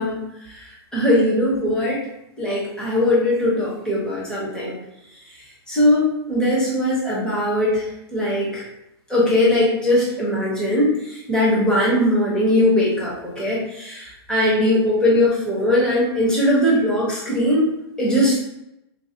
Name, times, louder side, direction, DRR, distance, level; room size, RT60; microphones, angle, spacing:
voice 1, 0.0-2.0 2.4-4.7 5.7-8.6 9.1-17.7 18.0-18.4, left 1 dB, 5° left, -7 dB, 0.9 m, -20 dB
4.6 x 2.2 x 2.7 m, 0.86 s
hypercardioid pair, 155°, 14 cm